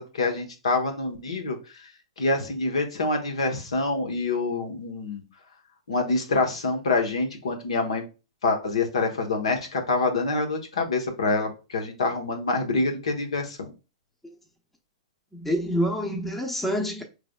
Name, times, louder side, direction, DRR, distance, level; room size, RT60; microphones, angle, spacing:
voice 1, 0.0-1.9 2.2-5.2 5.9-8.0 8.4-13.7, left 3 dB, 85° left, 1.0 m, -26 dB
voice 2, 15.3-17.0, equal, 5° left, 0.8 m, -27 dB
5.1 x 3.3 x 2.2 m
hypercardioid pair, 125°, 3 cm